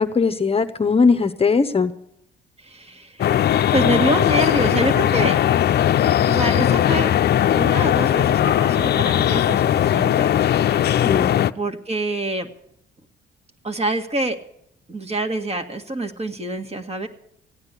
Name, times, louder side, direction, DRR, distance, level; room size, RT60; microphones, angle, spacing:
voice 1, 0.0-1.9 11.0-11.3, left 4 dB, 30° left, 8 dB, 0.8 m, -19 dB
voice 2, 2.6-3.4 3.7-5.4 6.2-7.1 7.5-10.3 11.5-12.5 13.6-14.4 14.9-17.1, right 1 dB, 30° right, 5 dB, 1.7 m, -25 dB
sound 1, 3.2-11.5, left 11 dB, 55° left, 0.5 m, -18 dB
15.5 x 9.6 x 8.2 m, 0.72 s
cardioid pair, 90°, 20 cm